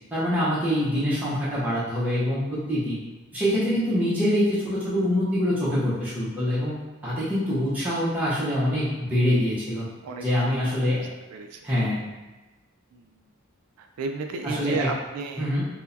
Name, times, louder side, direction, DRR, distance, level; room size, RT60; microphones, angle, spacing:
voice 1, 0.1-3.0 3.3-6.7 7.0-9.9 10.2-11.1 11.6-12.0 14.4-14.9 15.4-15.6, equal, 5° right, -11 dB, 0.8 m, -24 dB
voice 2, 10.0-10.7 11.3-11.6 12.9-13.2 13.8-15.5, right 4 dB, 85° right, 4 dB, 0.3 m, -33 dB
4.5 x 2.1 x 2.6 m, 1.1 s
head